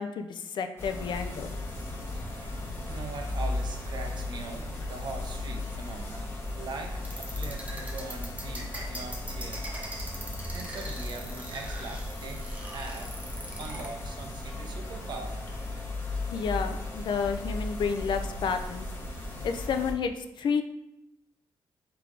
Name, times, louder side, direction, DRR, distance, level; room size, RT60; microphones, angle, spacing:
voice 1, 0.0-1.5 16.3-18.9 19.4-20.1 20.4-20.6, left 6 dB, 65° left, 7 dB, 0.4 m, -30 dB
sound 1, 0.8-19.9, left 2 dB, 25° left, 0.8 m, -36 dB
voice 2, 2.1-2.6 2.8-9.7 10.5-15.5, right 3 dB, 60° right, 3 dB, 0.7 m, -42 dB
sound 2, 7.0-13.9, right 1 dB, 15° right, 0.8 m, -41 dB
3.8 x 3.4 x 3.2 m, 0.87 s
wide cardioid pair, 130°, 9 cm